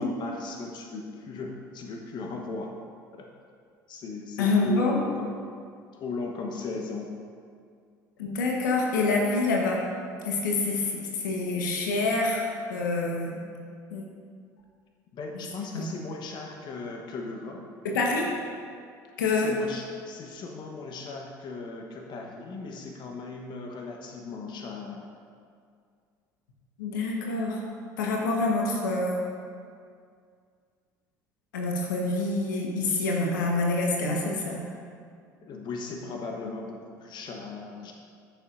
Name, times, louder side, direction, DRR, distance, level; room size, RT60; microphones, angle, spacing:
voice 1, 0.0-2.7 3.1-3.3 3.9-5.4 5.9-7.1 15.1-17.6 19.3-25.0 35.4-37.9, left 3 dB, 45° left, 1 dB, 1.1 m, -37 dB
voice 2, 4.4-5.0 8.2-9.8 10.2-12.4 12.7-13.4 13.9-14.0 15.3-15.4 15.7-15.8 17.8-18.3 19.2-19.5 26.8-27.6 28.0-29.2 31.5-34.6, left 3 dB, 75° left, -1 dB, 1.2 m, -26 dB
13.5 x 6.8 x 2.6 m, 2.2 s
hypercardioid pair, 65°, 10 cm